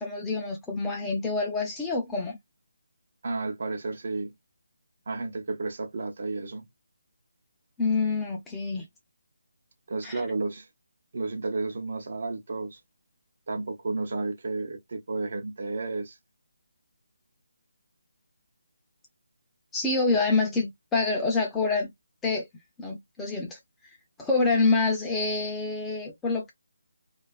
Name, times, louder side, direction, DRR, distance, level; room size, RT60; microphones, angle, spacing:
voice 1, 0.0-2.4 7.8-8.9 10.0-10.2 19.7-21.9 22.2-22.5 22.8-23.6 24.2-26.5, left 3 dB, 10° left, 0.5 m, -26 dB
voice 2, 3.2-4.3 5.1-6.6 9.9-10.7 11.1-12.8 13.5-16.2, right 3 dB, 50° right, 0.7 m, -32 dB
2.4 x 2.3 x 2.3 m
figure-of-eight pair, 165°, 0 cm